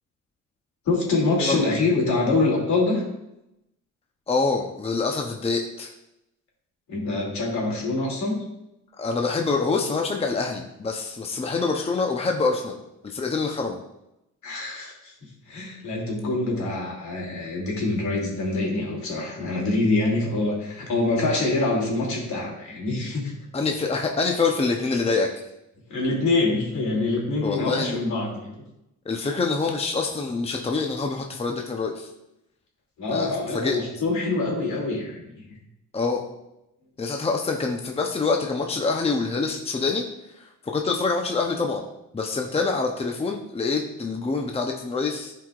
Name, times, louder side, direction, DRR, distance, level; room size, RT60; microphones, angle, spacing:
voice 1, 0.9-3.0 6.9-8.4 14.4-15.1 15.5-23.3 25.9-28.6 33.0-35.3, left 2 dB, 70° left, -2 dB, 2.8 m, -25 dB
voice 2, 4.3-5.9 9.0-12.8 13.0-13.8 23.5-25.3 27.4-28.0 29.0-32.1 33.1-33.8 35.9-36.2 37.0-40.1 40.3-41.8 42.1-45.3, left 4 dB, 20° left, 2 dB, 0.7 m, -26 dB
11.5 x 4.8 x 2.4 m, 0.86 s
cardioid pair, 90°, 30 cm